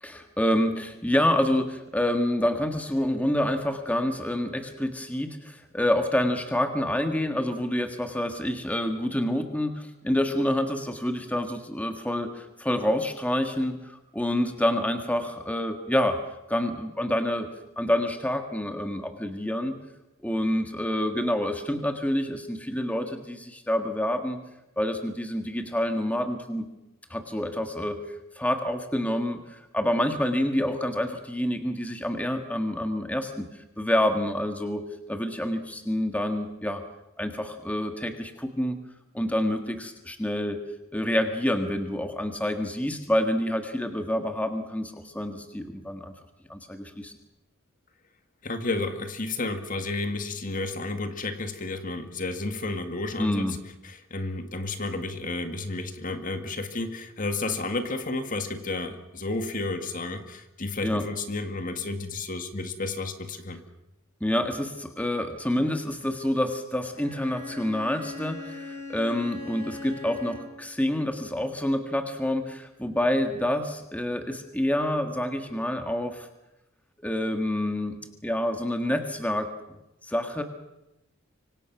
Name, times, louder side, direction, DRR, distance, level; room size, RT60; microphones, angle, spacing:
voice 1, 0.0-16.2 16.5-17.5 17.8-19.8 20.2-24.4 24.8-26.6 27.1-28.0 28.3-33.5 33.8-36.8 37.2-38.8 39.1-40.6 40.9-46.1 46.5-47.1 53.2-53.5 60.8-61.0 64.2-76.3 77.0-78.0 78.2-79.5 80.0-80.4, left 1 dB, 5° left, 6 dB, 1.7 m, -27 dB
voice 2, 48.4-53.6 53.8-63.6, left 2 dB, 40° left, 7 dB, 1.9 m, -32 dB
Bowed string instrument, 66.9-70.7, left 2 dB, 80° left, 7.5 m, -40 dB
25.5 x 25.0 x 6.1 m, 0.90 s
head